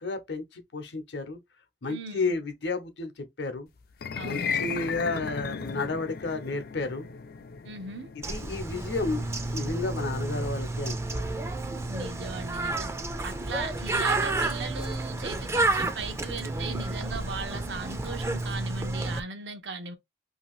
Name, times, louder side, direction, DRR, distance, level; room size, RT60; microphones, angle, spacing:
voice 1, 0.0-1.4 1.8-3.7 4.2-7.1 8.3-9.2 9.5-11.2, left 3 dB, 75° left, 0.7 m, -32 dB
voice 2, 1.9-2.3 4.1-4.6 7.6-8.1 11.9-12.9 13.2-20.0, right 3 dB, 85° right, 0.7 m, -38 dB
sound 1, 3.9-14.2, left 6 dB, 55° left, 0.4 m, -37 dB
Bird, 8.2-19.2, right 2 dB, 15° right, 0.3 m, -31 dB
2.8 x 2.6 x 3.0 m
head